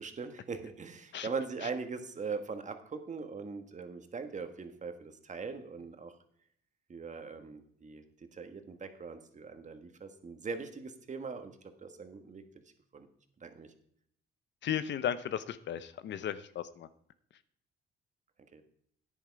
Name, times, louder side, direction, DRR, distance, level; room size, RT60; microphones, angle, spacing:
voice 1, 0.0-6.2 6.9-11.6 11.8-12.4 12.9-13.1 13.4-13.7 18.5-18.6, right 5 dB, 35° right, 7 dB, 1.5 m, -41 dB
voice 2, 14.6-16.9, left 9 dB, 65° left, 14 dB, 0.8 m, -35 dB
11.0 x 9.9 x 4.7 m, 0.68 s
cardioid pair, 90°, 20 cm